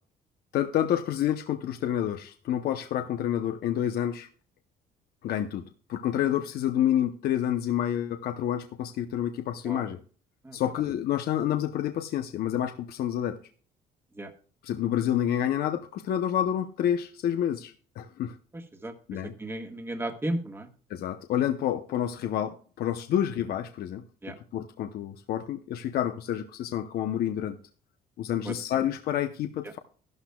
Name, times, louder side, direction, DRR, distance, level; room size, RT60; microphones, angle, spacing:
voice 1, 0.5-4.3 5.2-5.6 5.9-10.0 10.5-13.4 14.6-18.4 19.1-19.3 20.9-24.0 24.5-27.6 28.2-29.8, left 10 dB, 65° left, 7 dB, 0.8 m, -28 dB
voice 2, 19.4-20.7 24.2-24.3 28.5-28.6, right 1 dB, 15° right, 5 dB, 1.5 m, -33 dB
13.0 x 12.0 x 2.3 m, 0.41 s
cardioid pair, 110°, 17 cm